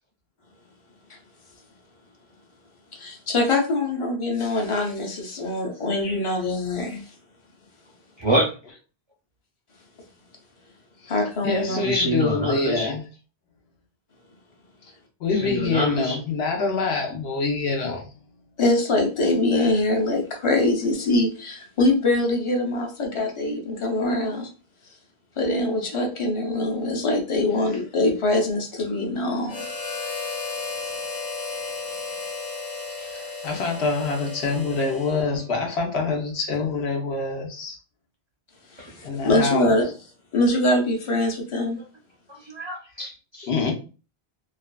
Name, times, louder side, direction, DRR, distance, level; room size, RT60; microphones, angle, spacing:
voice 1, 2.9-7.1 11.1-11.8 18.6-24.5 25.4-29.7 38.7-39.9 40.3-41.8, left 2 dB, 35° left, 0.6 m, -23 dB
voice 2, 8.2-8.5 11.8-12.9 15.4-16.2 33.0-33.1 42.4-43.5, right 1 dB, 40° right, 0.4 m, -26 dB
voice 3, 11.0-13.1 15.2-18.0 27.5-27.6 28.9-29.0 33.1-37.8 39.0-39.8 43.4-43.7, left 4 dB, 85° left, 1.0 m, -26 dB
Harmonica, 29.5-35.5, left 4 dB, 55° left, 1.0 m, -34 dB
2.6 x 2.3 x 2.2 m
omnidirectional pair, 1.1 m